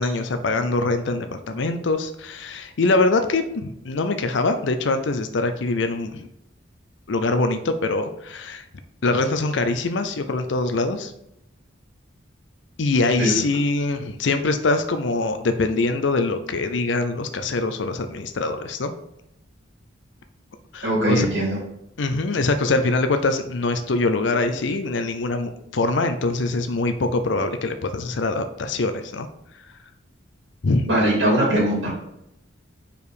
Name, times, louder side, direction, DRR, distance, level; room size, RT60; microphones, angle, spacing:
voice 1, 0.0-6.3 7.1-8.7 9.0-11.1 12.8-18.9 20.7-21.3 22.0-29.3 30.6-30.9, left 3 dB, 70° left, 8 dB, 0.5 m, -23 dB
voice 2, 20.8-21.6 30.8-31.9, right 1 dB, 70° right, -3 dB, 2.4 m, -20 dB
5.1 x 4.7 x 4.7 m, 0.81 s
head